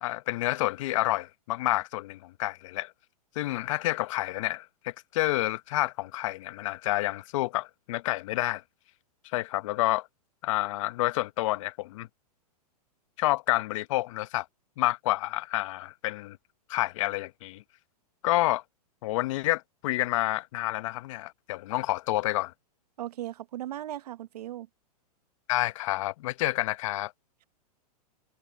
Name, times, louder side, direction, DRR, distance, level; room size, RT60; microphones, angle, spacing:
voice 1, 0.0-2.9 3.4-8.6 9.3-10.1 10.4-12.1 13.2-14.5 14.8-16.4 16.7-17.6 18.2-18.6 19.0-22.5 25.5-27.1, left 18 dB, 50° left, 0.9 m, -29 dB
voice 2, 23.0-24.7, right 13 dB, 75° right, 1.0 m, -37 dB
hypercardioid pair, 145°, 20 cm